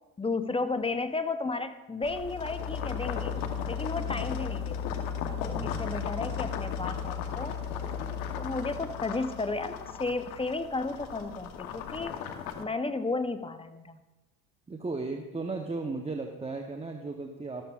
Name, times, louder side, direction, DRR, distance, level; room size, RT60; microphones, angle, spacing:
voice 1, 0.2-3.3 3.7-5.0 5.4-7.6 8.3-12.1 12.6-14.0, left 3 dB, 15° left, 10 dB, 0.7 m, -33 dB
sound 1, 2.0-12.6, left 7 dB, 90° left, 1.1 m, -35 dB
voice 2, 5.5-6.0 14.7-17.6, right 3 dB, 15° right, 3 dB, 0.9 m, -35 dB
13.0 x 13.0 x 2.4 m, 1.1 s
supercardioid pair, 85°, 41 cm